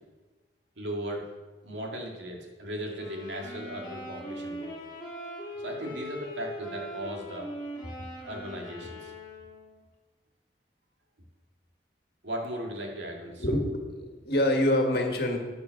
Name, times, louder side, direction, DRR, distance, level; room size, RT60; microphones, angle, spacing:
voice 1, 0.8-1.3 1.6-4.8 5.6-7.5 7.8-7.9 8.2-9.1 12.2-13.4, equal, 90° right, 0 dB, 2.3 m, -37 dB
sound 1, 2.9-9.7, equal, 25° left, 2.9 m, -41 dB
voice 2, 13.4-15.4, left 1 dB, 60° left, 2 dB, 1.9 m, -26 dB
9.5 x 9.3 x 6.5 m, 1.3 s
head